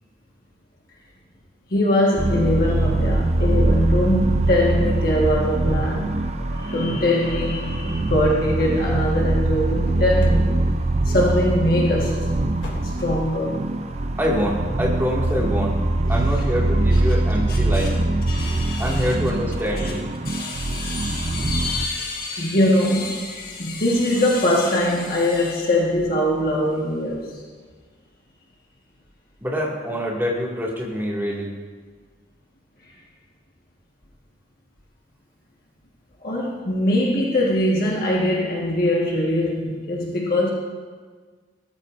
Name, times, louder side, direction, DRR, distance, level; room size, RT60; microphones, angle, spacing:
voice 1, 1.7-10.5 11.0-12.3 12.8-13.6 17.5-17.9 18.3-19.1 19.8-19.9 20.2-27.3 36.2-40.5, left 1 dB, 50° left, -3 dB, 1.6 m, -22 dB
sound 1, 2.2-21.9, right 2 dB, 35° right, 0.5 m, -23 dB
sound 2, 9.8-10.5 10.8-11.2 11.5-11.7 12.1-13.4 13.7-13.8 14.3-14.4, left 1 dB, 75° left, 2.9 m, -38 dB
voice 2, 14.2-15.8 16.1-18.0 18.8-20.0 29.4-31.5, equal, 10° right, -4 dB, 2.1 m, -25 dB
18.5 x 13.0 x 2.6 m, 1.5 s
head